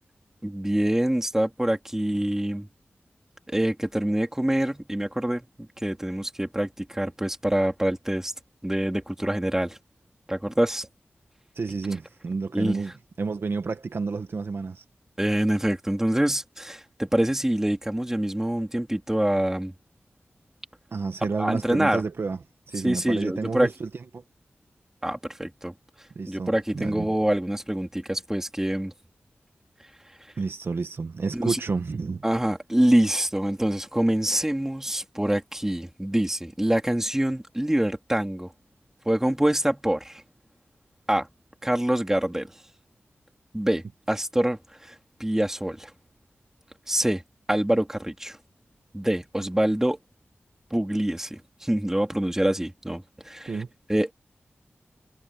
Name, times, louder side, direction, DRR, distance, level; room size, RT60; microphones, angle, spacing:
voice 1, 0.4-2.7 3.5-8.3 8.6-9.8 10.3-10.9 12.5-12.8 15.2-19.7 21.4-22.0 22.8-23.7 25.0-25.7 26.3-28.9 31.3-31.6 32.2-38.5 39.0-40.2 41.1-41.3 41.6-42.5 43.5-44.9 45.2-45.9 46.9-47.2 47.5-48.4 48.9-50.0 50.7-53.6 53.9-54.1, right 1 dB, 10° right, 3.3 m, -25 dB
voice 2, 11.5-12.9 13.2-14.8 20.9-22.4 22.7-24.2 26.1-27.1 30.4-32.2 53.5-53.7, right 4 dB, 65° right, 1.3 m, -30 dB
wide cardioid pair, 85°, 4 cm